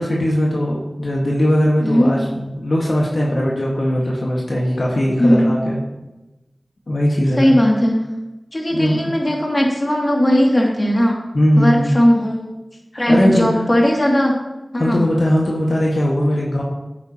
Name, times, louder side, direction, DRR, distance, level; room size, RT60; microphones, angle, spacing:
voice 1, 0.0-5.8 6.9-7.5 8.7-9.0 11.3-11.9 12.9-13.6 14.8-16.6, equal, 65° left, -4 dB, 1.6 m, -19 dB
voice 2, 1.8-2.1 5.2-5.6 7.4-8.0 8.5-11.2 11.6-12.5 13.0-14.3 14.7-15.0, equal, 35° left, -2 dB, 2.4 m, -17 dB
9.5 x 8.8 x 2.9 m, 1.0 s
wide cardioid pair, 45°, 0 cm